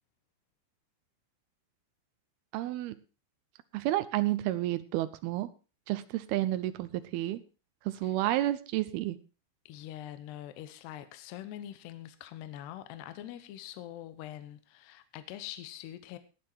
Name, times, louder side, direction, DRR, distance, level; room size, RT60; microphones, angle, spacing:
voice 1, 2.5-3.0 3.7-5.5 5.9-7.4 7.9-9.2, right 15 dB, 90° right, 12 dB, 2.2 m, -30 dB
voice 2, 9.7-16.2, left 12 dB, 70° left, 11 dB, 2.8 m, -44 dB
19.0 x 9.0 x 4.5 m, 0.33 s
omnidirectional pair, 5.5 m